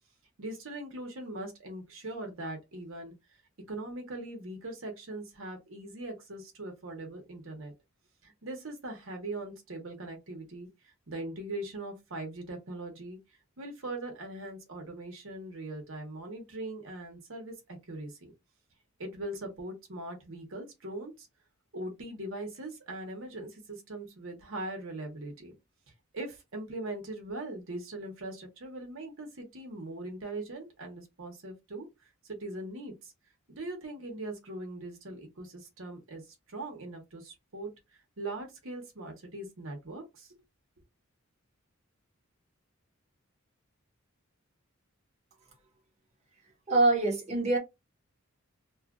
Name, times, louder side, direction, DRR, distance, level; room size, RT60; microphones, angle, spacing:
voice 1, 0.4-3.1 3.7-7.7 8.2-13.2 13.6-18.3 19.0-21.3 21.7-25.5 26.1-31.9 32.2-33.1 33.5-37.7 38.2-40.3, right 2 dB, 70° right, 1.0 m, -41 dB
voice 2, 46.7-47.6, right 2 dB, 35° right, 0.9 m, -24 dB
2.7 x 2.4 x 2.4 m
head